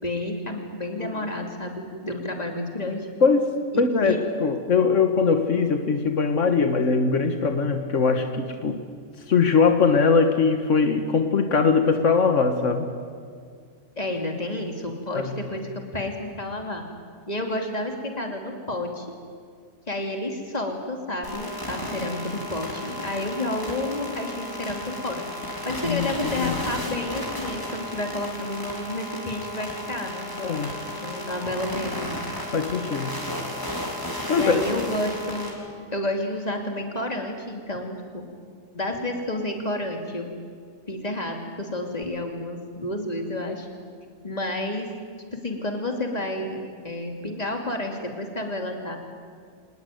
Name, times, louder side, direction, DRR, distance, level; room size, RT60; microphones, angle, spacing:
voice 1, 0.0-3.1 3.7-4.2 14.0-16.9 17.3-19.1 19.9-25.2 25.6-30.3 31.0-32.1 34.3-35.5 35.9-38.2 38.7-40.3 40.9-43.7 44.2-44.9 45.3-46.6 46.8-49.0, left 1 dB, 30° left, 3 dB, 3.0 m, -30 dB
voice 2, 3.2-8.8 9.3-12.9 15.2-15.4 25.8-26.6 30.4-30.7 32.5-33.3 34.3-34.6, left 5 dB, 80° left, 6 dB, 1.8 m, -21 dB
sound 1, 21.2-35.5, left 1 dB, 15° left, 4.2 m, -33 dB
25.5 x 20.0 x 9.3 m, 2.1 s
omnidirectional pair, 1.3 m